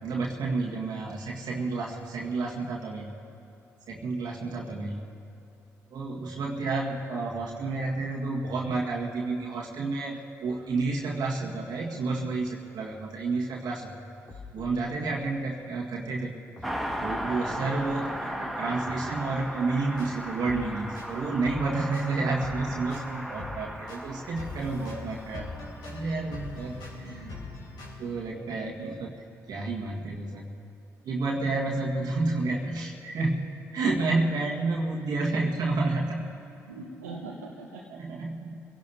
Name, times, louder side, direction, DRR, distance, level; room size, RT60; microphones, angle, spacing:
voice 1, 0.0-3.1 3.9-5.0 5.9-14.0 14.5-16.3 17.0-25.5 25.8-26.8 27.0-27.3 28.0-29.1 29.5-30.5 31.0-36.3 37.9-38.6, right 3 dB, 55° right, -3 dB, 1.7 m, -30 dB
voice 2, 4.4-4.9 26.9-27.4 36.7-37.8, right 3 dB, 85° right, -4 dB, 1.1 m, -44 dB
sound 1, 14.3-15.4 16.6-17.8 18.8-20.1, left 3 dB, 35° left, 2.8 m, -49 dB
Car passing by, 16.6-26.6 26.8-26.9, equal, ahead, 1.8 m, -36 dB
sound 2, 19.8-28.0, left 2 dB, 60° left, 3.7 m, -42 dB
25.0 x 17.0 x 2.8 m, 2.8 s
figure-of-eight pair, 40°, 8 cm